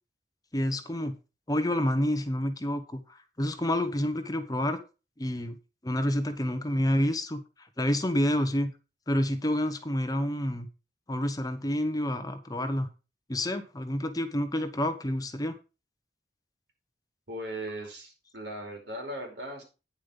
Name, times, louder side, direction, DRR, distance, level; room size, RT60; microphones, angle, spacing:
voice 1, 0.5-1.2 1.5-4.8 5.2-5.6 5.8-8.7 9.1-10.7 11.1-12.9 13.3-15.6, left 1 dB, 20° left, 9 dB, 1.0 m, -28 dB
voice 2, 17.3-19.6, right 1 dB, 75° right, 1 dB, 5.1 m, -38 dB
9.8 x 7.4 x 5.3 m, 0.32 s
head